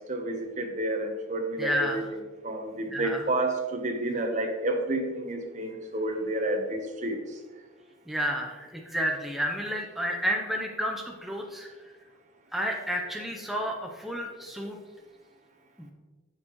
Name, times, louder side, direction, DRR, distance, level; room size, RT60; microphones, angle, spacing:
voice 1, 0.1-7.2, right 1 dB, 40° right, 4 dB, 1.0 m, -30 dB
voice 2, 1.6-2.0 2.9-3.2 8.1-11.7 12.5-14.8 15.8-15.9, equal, ahead, 0 dB, 0.6 m, -31 dB
9.9 x 6.5 x 3.1 m, 1.3 s
head